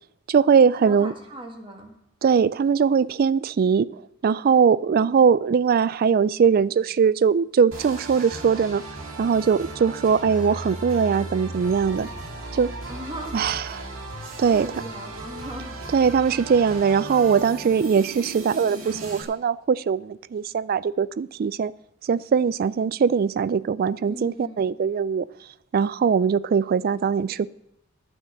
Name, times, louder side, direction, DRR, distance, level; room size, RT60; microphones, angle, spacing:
voice 1, 0.3-1.1 2.2-8.8 9.2-12.1 12.5-12.7 13.3-13.6 14.4-14.7 15.9-21.7 22.0-25.3 25.7-27.5, right 6 dB, 45° right, 0.3 m, -21 dB
voice 2, 0.8-2.0 12.9-13.5 14.5-15.8 24.0-24.8, equal, 25° right, 1.8 m, -38 dB
sound 1, 7.7-19.2, right 2 dB, 90° right, 2.1 m, -36 dB
9.8 x 6.4 x 8.3 m
head